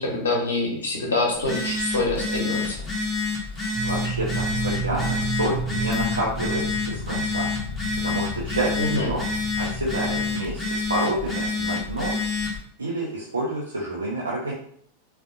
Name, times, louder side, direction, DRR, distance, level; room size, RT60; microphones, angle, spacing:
voice 1, 0.0-2.8 8.8-9.1, left 2 dB, 65° left, -1 dB, 1.1 m, -25 dB
Telephone, 1.3-12.6, left 3 dB, 15° left, 0.8 m, -28 dB
voice 2, 3.5-7.5 8.0-9.2 9.6-12.2 12.8-14.5, right 1 dB, 75° right, -5 dB, 0.6 m, -29 dB
sound 1, 3.7-8.4, right 7 dB, 30° right, 0.4 m, -33 dB
sound 2, 4.3-10.4, left 3 dB, 10° right, 0.9 m, -36 dB
3.7 x 2.5 x 2.5 m, 0.63 s
figure-of-eight pair, 90°, 0 cm